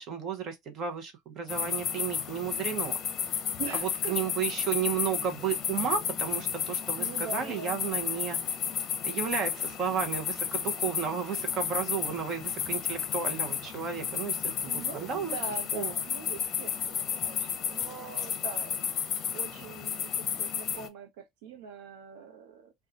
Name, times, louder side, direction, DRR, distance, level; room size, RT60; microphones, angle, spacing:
voice 1, 0.0-3.0 3.7-8.4 9.0-15.3 15.7-15.9, right 7 dB, 40° right, 0.8 m, -33 dB
sound 1, 1.5-20.9, left 8 dB, 35° left, 0.8 m, -33 dB
voice 2, 3.6-4.2 7.0-7.8 14.4-18.8 19.3-22.7, right 5 dB, 90° right, 0.8 m, -43 dB
4.0 x 2.3 x 2.4 m
cardioid pair, 150°, 0 cm